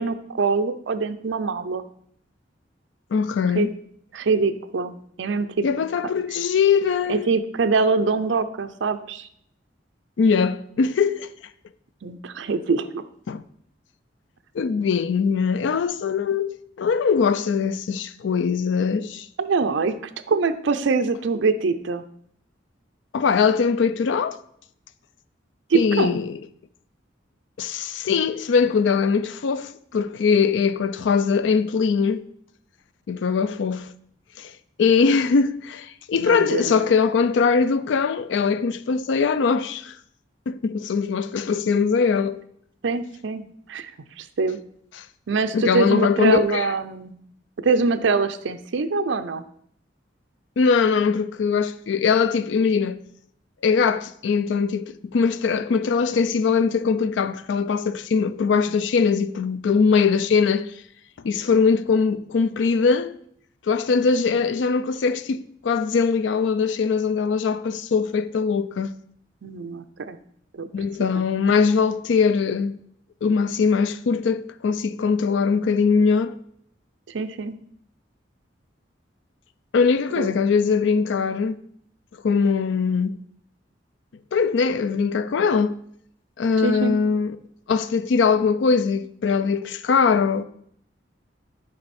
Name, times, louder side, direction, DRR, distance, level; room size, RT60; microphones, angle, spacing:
voice 1, 0.0-1.8 3.5-3.7 4.1-5.7 7.1-9.3 12.0-13.0 19.4-19.9 20.3-22.0 25.7-26.2 36.2-36.7 42.8-43.9 44.2-44.6 45.3-47.2 47.6-49.4 69.4-70.2 70.6-70.7 71.0-71.3 77.1-77.6 80.2-80.4 86.6-86.9, right 4 dB, 75° right, 0.5 m, -24 dB
voice 2, 3.1-3.7 5.6-7.3 10.2-11.3 13.3-13.4 14.5-19.3 23.1-24.4 25.7-26.4 27.6-32.3 33.1-33.9 34.4-34.5 34.8-39.9 40.5-42.4 45.0-45.1 45.5-46.7 50.6-53.0 53.6-60.7 61.2-63.1 63.7-68.9 70.7-72.8 73.2-76.4 79.7-81.6 82.2-83.2 84.3-85.8 86.4-87.4 87.7-90.4, left 5 dB, 70° left, 0.4 m, -21 dB
7.6 x 5.2 x 4.2 m
head